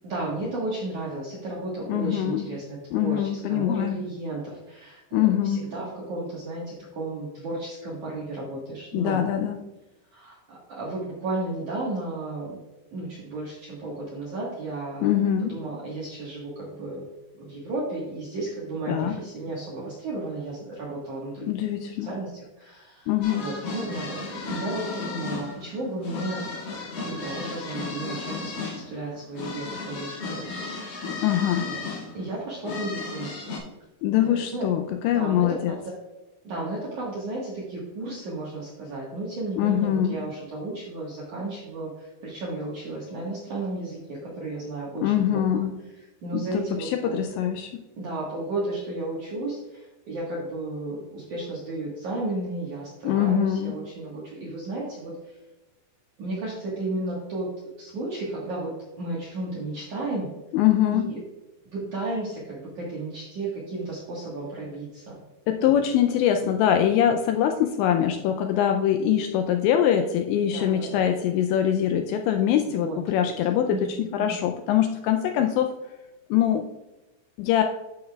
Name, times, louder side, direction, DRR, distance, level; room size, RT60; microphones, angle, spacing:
voice 1, 0.0-9.2 10.1-12.6 12.9-15.1 15.5-17.1 17.4-21.5 22.0-30.4 31.6-31.9 32.1-33.4 34.2-34.7 35.1-35.8 36.4-45.4 46.2-47.2 48.0-55.4 56.2-60.3 60.9-61.2 61.7-65.2 65.8-65.9 70.5-71.1 72.7-73.3 73.7-74.4, right 2 dB, 70° right, -5 dB, 1.9 m, -33 dB
voice 2, 1.9-2.5 2.9-4.0 5.1-5.7 8.9-9.6 15.0-15.6 18.9-19.2 21.4-22.1 23.1-23.5 31.2-31.7 34.0-35.7 39.6-40.2 45.0-45.7 46.3-47.8 53.0-53.8 60.5-61.1 65.5-75.7 76.3-76.7 77.4-77.6, left 10 dB, 85° left, 5 dB, 2.5 m, -23 dB
sound 1, 23.2-33.6, left 3 dB, 55° left, 3.2 m, -35 dB
11.5 x 6.5 x 2.3 m, 1.1 s
omnidirectional pair, 5.6 m